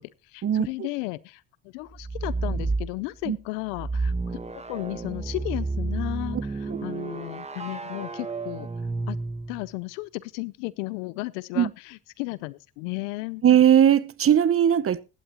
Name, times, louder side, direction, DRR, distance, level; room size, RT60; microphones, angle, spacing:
voice 1, 0.0-8.7 9.1-9.2 9.5-13.4, left 23 dB, 85° left, 0.7 m, -34 dB
sound 1, 1.9-2.9 3.7-9.7, right 3 dB, 20° right, 1.8 m, -31 dB
voice 2, 13.4-15.0, right 9 dB, 40° right, 0.9 m, -18 dB
16.5 x 12.5 x 3.0 m
hypercardioid pair, 60°, 36 cm